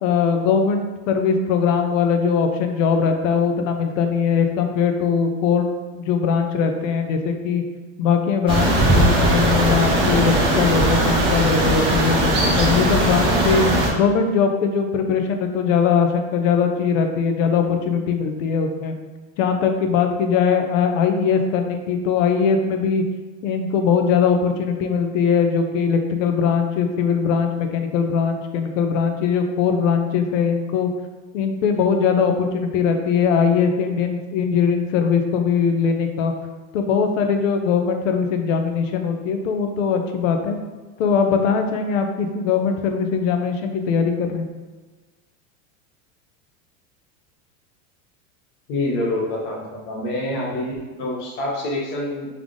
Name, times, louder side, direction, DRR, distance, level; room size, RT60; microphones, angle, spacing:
voice 1, 0.0-5.7 5.9-7.6 8.0-13.6 13.9-18.9 19.4-23.0 23.4-30.9 31.3-36.3 36.7-40.6 41.0-44.5, left 6 dB, 65° left, 5 dB, 0.7 m, -21 dB
sound 1, 8.5-13.9, right 1 dB, 15° right, 0.5 m, -19 dB
voice 2, 48.7-52.3, left 1 dB, 30° left, -3 dB, 0.9 m, -26 dB
3.6 x 3.5 x 3.7 m, 1.3 s
supercardioid pair, 165°, 42 cm